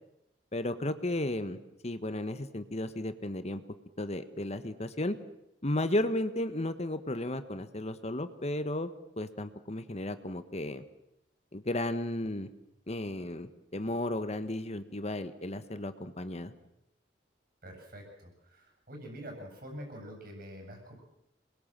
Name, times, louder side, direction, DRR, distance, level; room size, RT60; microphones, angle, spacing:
voice 1, 0.5-3.6 4.0-5.2 5.6-8.9 9.2-10.8 11.5-12.5 12.9-16.5, left 1 dB, 35° left, 11 dB, 1.4 m, -34 dB
voice 2, 17.6-21.0, equal, 55° right, 3 dB, 7.8 m, -46 dB
28.0 x 22.0 x 7.6 m, 0.84 s
head